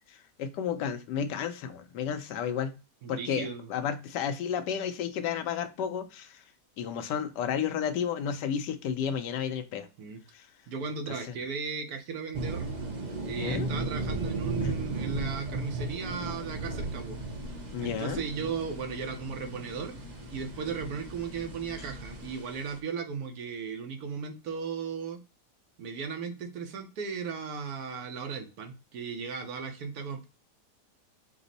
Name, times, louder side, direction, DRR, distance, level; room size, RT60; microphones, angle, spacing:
voice 1, 0.1-2.7 3.1-6.4 6.8-9.9 10.3-10.5 11.1-11.3 13.4-13.7 14.6-14.8 17.7-18.2, left 8 dB, 85° left, 9 dB, 1.2 m, -32 dB
voice 2, 3.0-3.7 10.0-10.2 10.7-12.7 13.2-17.2 17.8-20.0 20.3-25.2 25.8-30.3, right 6 dB, 65° right, 5 dB, 1.2 m, -36 dB
sound 1, 12.3-22.8, right 2 dB, 45° right, 0.5 m, -36 dB
sound 2, 16.3-22.3, left 2 dB, 30° left, 0.8 m, -46 dB
6.0 x 2.0 x 3.9 m, 0.32 s
omnidirectional pair, 1.8 m